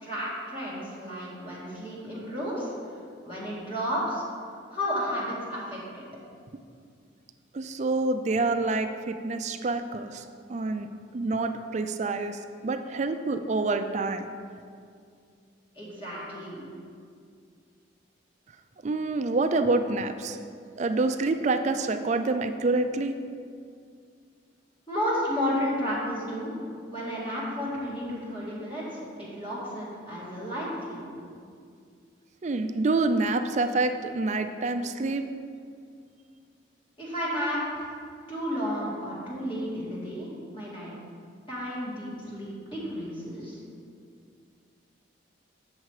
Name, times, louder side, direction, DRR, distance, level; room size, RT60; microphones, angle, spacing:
voice 1, 0.0-3.0 3.2-4.2 4.7-6.0 15.8-16.7 24.9-31.1 37.0-37.9 38.3-40.9 41.5-43.6, equal, 25° left, -7 dB, 1.9 m, -32 dB
voice 2, 7.5-10.9 11.1-14.3 18.8-20.4 20.8-23.2 32.4-35.2, right 3 dB, 35° right, 8 dB, 0.4 m, -27 dB
7.4 x 6.6 x 4.7 m, 2.3 s
head